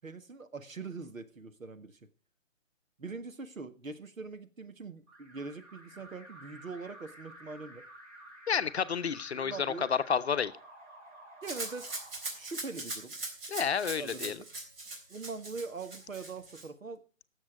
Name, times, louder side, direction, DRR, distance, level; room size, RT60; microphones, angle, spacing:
voice 1, 0.0-2.0 3.0-7.8 9.3-9.9 11.4-11.9 12.3-13.1 13.9-14.5 15.1-17.0, right 4 dB, 80° right, 8 dB, 1.7 m, -42 dB
Alarm, 5.1-13.0, right 1 dB, 30° right, 5.1 m, -52 dB
voice 2, 8.5-10.5 13.5-14.4, left 7 dB, 55° left, 12 dB, 0.8 m, -30 dB
Rattle (instrument), 11.4-16.7, right 2 dB, 45° right, 3.6 m, -41 dB
17.5 x 7.4 x 4.8 m, 0.35 s
figure-of-eight pair, 150°, 39 cm